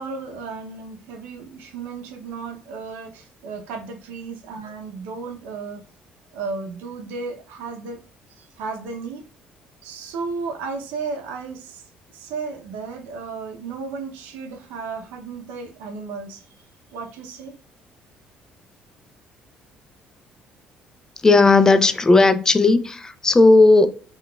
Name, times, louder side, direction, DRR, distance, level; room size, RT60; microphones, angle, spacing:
voice 1, 0.0-5.8 6.3-8.0 8.4-9.2 9.8-16.5 16.9-17.5, right 4 dB, 85° right, 0.6 m, -34 dB
voice 2, 21.2-23.9, left 3 dB, 20° left, 0.4 m, -14 dB
3.8 x 2.3 x 2.2 m
supercardioid pair, 80°, 3 cm